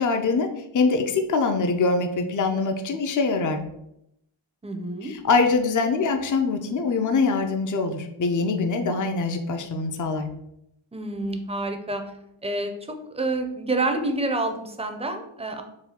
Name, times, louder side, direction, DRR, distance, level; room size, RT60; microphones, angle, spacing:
voice 1, 0.0-3.6 5.0-10.3, left 4 dB, 40° left, 6 dB, 0.5 m, -23 dB
voice 2, 4.6-5.1 10.9-12.1 12.4-15.6, right 2 dB, 15° right, 5 dB, 0.5 m, -28 dB
4.0 x 2.3 x 4.2 m, 0.79 s
wide cardioid pair, 70°, 49 cm